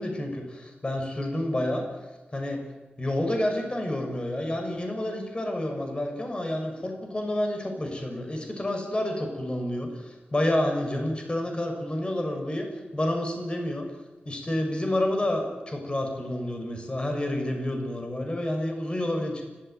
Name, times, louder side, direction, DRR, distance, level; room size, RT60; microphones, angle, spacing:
voice 1, 0.0-1.8 2.3-2.6 3.0-12.7 12.9-13.8 14.2-19.4, left 1 dB, 30° left, 3 dB, 6.4 m, -29 dB
30.0 x 15.0 x 9.5 m, 1.2 s
cardioid pair, 60°, 3 cm